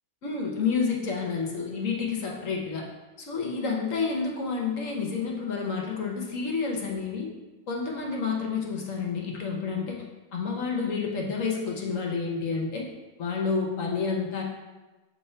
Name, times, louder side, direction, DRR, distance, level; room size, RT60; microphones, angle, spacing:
voice 1, 0.2-2.8 3.2-7.3 7.7-10.0 10.3-12.8 13.2-14.4, left 5 dB, 70° left, -1 dB, 1.3 m, -29 dB
6.9 x 3.1 x 4.3 m, 1.2 s
omnidirectional pair, 1.4 m